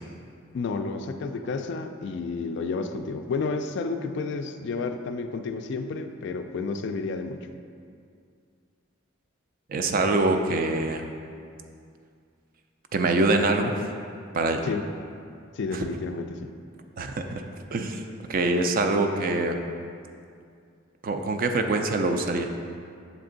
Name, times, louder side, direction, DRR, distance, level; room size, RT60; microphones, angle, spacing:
voice 1, 0.5-7.5 14.6-14.9 15.6-16.5, left 4 dB, 60° left, 8 dB, 0.3 m, -31 dB
voice 2, 9.7-11.0 12.9-13.8 14.3-14.6 15.7-15.9 17.0-17.4 17.7-18.0 18.3-19.6 21.0-22.5, right 2 dB, 45° right, 5 dB, 0.4 m, -24 dB
7.3 x 3.4 x 3.8 m, 2.3 s
head